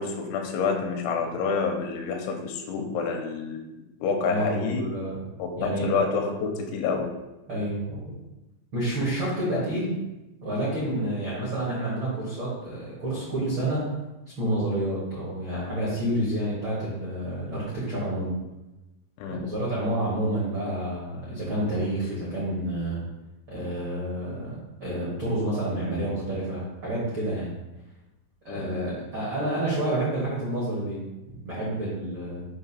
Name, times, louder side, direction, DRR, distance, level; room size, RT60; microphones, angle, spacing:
voice 1, 0.0-4.8 5.4-7.1 9.5-9.7 19.2-19.5 28.5-28.7, left 5 dB, 85° left, 3 dB, 3.1 m, -28 dB
voice 2, 4.3-5.2 5.6-5.8 7.5-8.0 8.7-9.9 10.4-13.8 14.4-18.3 19.3-23.0 23.5-24.5 24.8-27.5 28.4-32.4, right 1 dB, 75° right, -8 dB, 1.1 m, -29 dB
7.6 x 2.6 x 5.5 m, 1.0 s
omnidirectional pair, 5.4 m